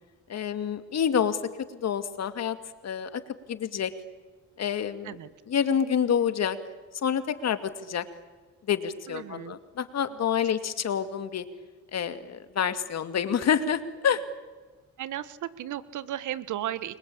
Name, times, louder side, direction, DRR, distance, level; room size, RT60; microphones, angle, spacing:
voice 1, 0.3-1.4 1.7-2.6 2.8-3.2 3.5-3.9 4.6-5.2 5.5-6.6 7.0-8.0 8.7-11.4 11.9-14.2, left 8 dB, 60° left, 10 dB, 2.4 m, -27 dB
voice 2, 9.1-9.5 15.0-17.0, right 12 dB, 75° right, 15 dB, 1.4 m, -35 dB
29.5 x 23.0 x 8.7 m, 1.3 s
cardioid pair, 90°, 30 cm